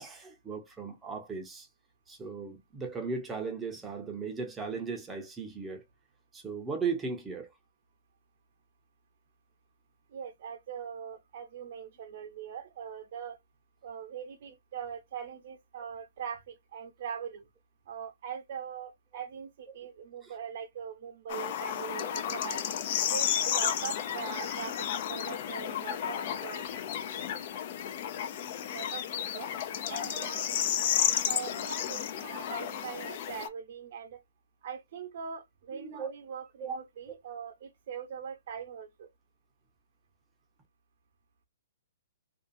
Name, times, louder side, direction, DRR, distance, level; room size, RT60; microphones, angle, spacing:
voice 1, 0.0-1.7 2.1-5.8 6.3-7.5 19.1-19.2 20.2-20.3 35.7-36.1 36.6-36.8, right 5 dB, 10° right, 0.7 m, -37 dB
voice 2, 10.1-13.4 13.8-17.4 17.9-22.6 23.1-26.7 27.2-27.3 28.7-29.5 29.9-30.5 31.3-34.2 34.6-39.1, right 7 dB, 55° right, 0.9 m, -41 dB
sound 1, 21.3-33.5, left 10 dB, 45° left, 0.5 m, -32 dB
2.6 x 2.3 x 2.5 m
hypercardioid pair, 145°, 0 cm